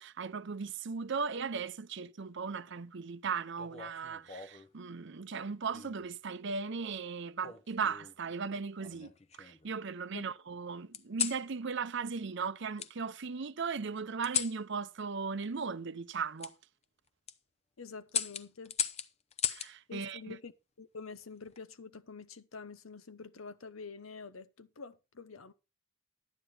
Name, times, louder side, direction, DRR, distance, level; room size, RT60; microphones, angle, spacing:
voice 1, 0.0-9.1 9.4-16.5 19.5-20.2, right 5 dB, 60° right, 0.7 m, -37 dB
sound 1, 3.6-4.7 5.7-6.1 7.4-8.2 8.8-9.7 10.9-11.4 12.8-12.9 14.2-14.6 16.4-16.5 17.1-17.4 18.1-19.7 21.2-21.6, left 8 dB, 30° left, 0.7 m, -37 dB
voice 2, 17.8-18.8 19.9-20.5 20.8-25.5, left 4 dB, 90° left, 0.9 m, -47 dB
12.0 x 9.2 x 4.3 m
head